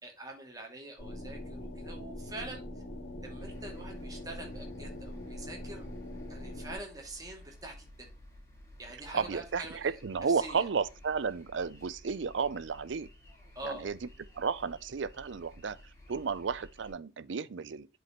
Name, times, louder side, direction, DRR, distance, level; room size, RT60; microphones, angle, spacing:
voice 1, 0.0-2.6 3.2-5.9 6.3-8.1 8.8-10.0 10.3-10.7 13.5-13.9, right 2 dB, 20° right, 2.5 m, -45 dB
sound 1, 1.0-6.8, left 1 dB, 85° left, 2.6 m, -42 dB
sound 2, 3.4-16.9, left 1 dB, 15° left, 4.7 m, -54 dB
voice 2, 9.1-13.1 13.6-14.0 14.4-17.9, right 5 dB, 80° right, 0.5 m, -33 dB
7.8 x 5.5 x 3.0 m
head